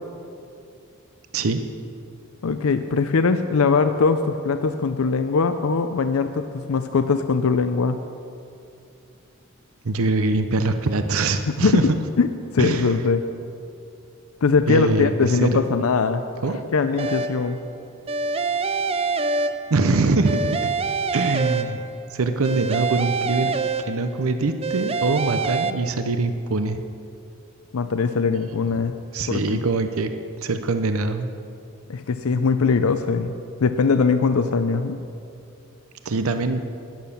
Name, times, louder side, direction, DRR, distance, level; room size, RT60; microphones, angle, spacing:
voice 1, 2.4-8.0 11.6-13.2 14.4-16.2 16.7-17.6 27.7-28.9 29.3-29.6 31.9-33.3 33.6-35.0, left 4 dB, 90° left, 9 dB, 0.5 m, -21 dB
voice 2, 9.8-12.0 12.6-12.9 14.7-15.6 16.4-16.6 19.7-20.7 21.1-21.8 22.1-23.5 23.9-26.8 28.7-28.8 29.1-30.1 30.4-31.3 36.0-36.6, right 3 dB, 85° right, 8 dB, 0.7 m, -23 dB
sound 1, 17.0-17.5 18.1-19.9 20.2-22.0 22.4-24.2 24.6-25.7, right 4 dB, 30° right, 0.5 m, -25 dB
12.0 x 10.0 x 7.0 m, 2.6 s
head